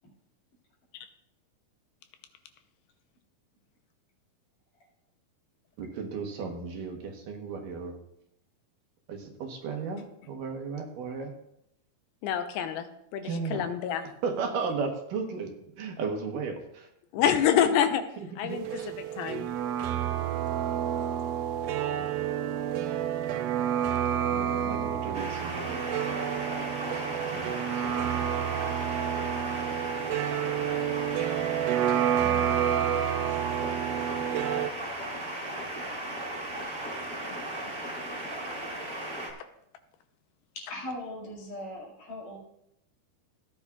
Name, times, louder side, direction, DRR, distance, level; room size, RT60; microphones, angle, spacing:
voice 1, 5.8-8.0 9.1-11.3 13.2-13.6 14.2-16.9 17.1-17.2 18.4-18.9 24.3-26.6 27.3-28.4, right 5 dB, 70° right, 3 dB, 2.6 m, -35 dB
voice 2, 12.2-12.9 13.1-14.0 17.1-18.0 18.4-18.7 19.0-19.5, left 9 dB, 85° left, 8 dB, 2.6 m, -26 dB
sound 1, 18.5-34.7, right 10 dB, 85° right, 1.9 m, -29 dB
sound 2, 25.1-39.3, right 1 dB, 30° right, 1.8 m, -36 dB
voice 3, 32.2-32.6 33.2-33.7 40.6-42.4, left 1 dB, 60° left, -3 dB, 3.6 m, -40 dB
16.5 x 10.0 x 2.4 m, 0.79 s
omnidirectional pair, 4.4 m